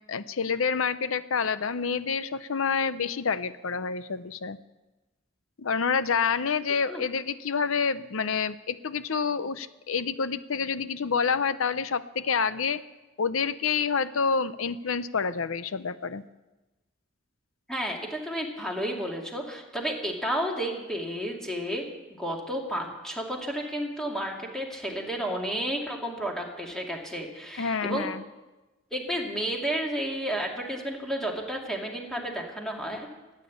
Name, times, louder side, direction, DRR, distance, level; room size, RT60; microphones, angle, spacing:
voice 1, 0.1-4.6 5.6-12.8 13.2-16.2 27.6-28.2, left 5 dB, 80° left, 14 dB, 0.7 m, -28 dB
voice 2, 17.7-21.8 22.2-28.1 28.9-33.1, equal, 5° left, 0 dB, 2.3 m, -32 dB
14.5 x 9.2 x 8.4 m, 1.1 s
head